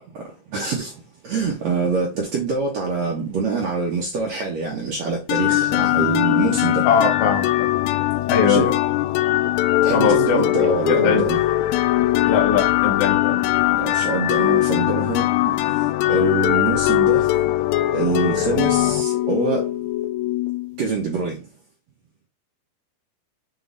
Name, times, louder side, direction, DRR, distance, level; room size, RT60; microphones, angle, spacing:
voice 1, 0.5-0.9 1.2-6.8 8.4-8.7 9.8-11.4 13.8-15.2 16.1-17.3 17.9-19.7 20.8-21.4, right 4 dB, 85° right, 1.5 m, -24 dB
sound 1, 5.3-20.9, left 15 dB, 85° left, 2.6 m, -20 dB
voice 2, 6.8-7.7 8.3-8.7 9.9-10.5 10.9-11.2 12.2-13.4, left 6 dB, 60° left, 1.6 m, -21 dB
7.7 x 3.2 x 3.9 m
omnidirectional pair, 4.9 m